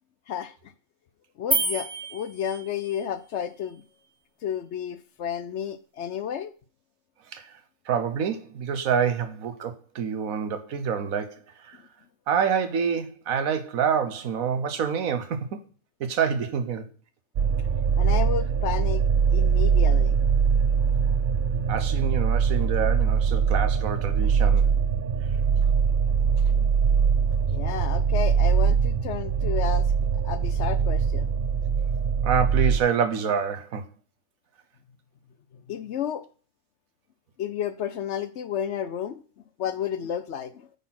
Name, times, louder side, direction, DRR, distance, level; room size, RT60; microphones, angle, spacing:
voice 1, 1.4-3.8 4.4-6.5 18.0-19.0 19.3-20.2 26.5-26.6 27.5-31.4 35.7-36.2 37.4-39.2 39.6-40.7, left 9 dB, 65° left, 0.8 m, -31 dB
sound 1, 1.5-3.0, right 2 dB, 35° right, 1.8 m, -29 dB
voice 2, 7.9-11.8 12.3-15.6 16.0-16.9 21.1-21.2 21.7-24.7 32.2-33.8, right 7 dB, 80° right, 1.4 m, -27 dB
sound 2, 17.4-32.8, right 6 dB, 55° right, 0.6 m, -22 dB
9.2 x 4.2 x 5.7 m
omnidirectional pair, 1.4 m